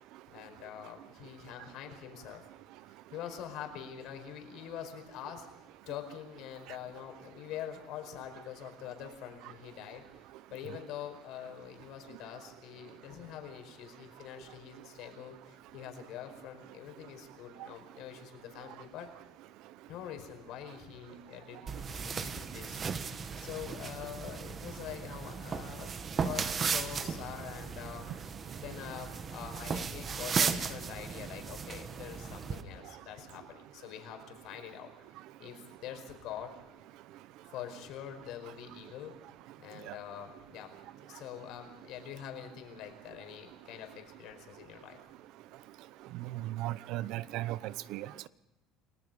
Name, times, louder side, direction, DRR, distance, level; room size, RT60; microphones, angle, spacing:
voice 1, 0.3-2.4 3.1-5.5 5.9-10.2 10.5-19.1 19.9-22.8 23.3-28.3 28.6-34.9 35.4-36.5 37.5-39.1 39.6-40.7 41.0-45.0, left 10 dB, 60° left, 4.9 m, -45 dB
sound 1, 21.7-32.6, right 5 dB, 30° right, 1.4 m, -36 dB
voice 2, 46.3-48.3, right 15 dB, 65° right, 0.8 m, -36 dB
29.5 x 19.5 x 5.4 m
cardioid pair, 150°, 0 cm